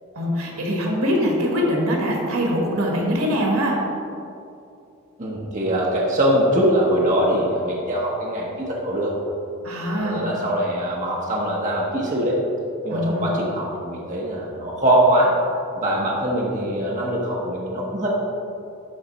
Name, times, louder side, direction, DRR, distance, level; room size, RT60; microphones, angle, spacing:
voice 1, 0.1-3.8 9.6-10.2 12.9-13.3, equal, 80° right, -1 dB, 1.6 m, -23 dB
voice 2, 5.2-9.1 9.8-12.4 12.8-15.4 15.8-18.1, right 1 dB, 35° right, -4 dB, 0.9 m, -22 dB
11.5 x 4.0 x 4.0 m, 2.6 s
head